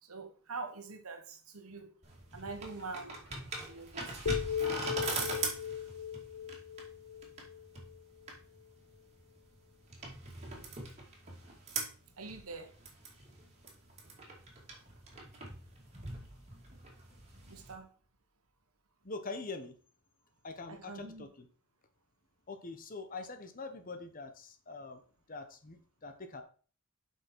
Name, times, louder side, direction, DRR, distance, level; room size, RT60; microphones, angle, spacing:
voice 1, 0.0-1.9 2.3-4.2 12.2-12.7 17.4-17.9 20.7-21.3, right 3 dB, 85° right, 1.3 m, -45 dB
sound 1, 2.0-17.7, right 3 dB, 30° right, 2.4 m, -42 dB
sound 2, 4.3-8.3, left 8 dB, 75° left, 0.8 m, -38 dB
voice 2, 19.0-19.8 20.4-21.5 22.5-25.0 25.3-26.4, left 3 dB, 40° left, 0.9 m, -44 dB
7.8 x 5.6 x 4.5 m
head